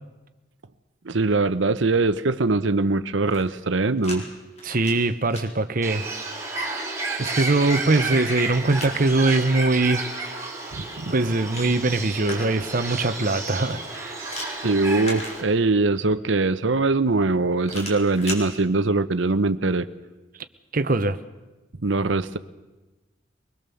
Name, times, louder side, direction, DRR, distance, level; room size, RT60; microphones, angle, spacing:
voice 1, 1.0-4.3 10.7-11.1 14.6-19.9 21.8-22.4, right 3 dB, 75° right, 13 dB, 0.9 m, -22 dB
sound 1, 3.1-4.2 4.5-5.4 7.1-9.0 11.0-12.8 14.3-15.8 17.6-18.4, left 1 dB, 35° left, 4.4 m, -39 dB
voice 2, 4.6-6.1 7.2-10.0 11.1-14.2 20.7-21.2, right 2 dB, 45° right, 11 dB, 0.9 m, -22 dB
Bird, 5.8-15.4, right 2 dB, 15° right, 3.9 m, -31 dB
23.5 x 20.5 x 7.0 m, 1.1 s
head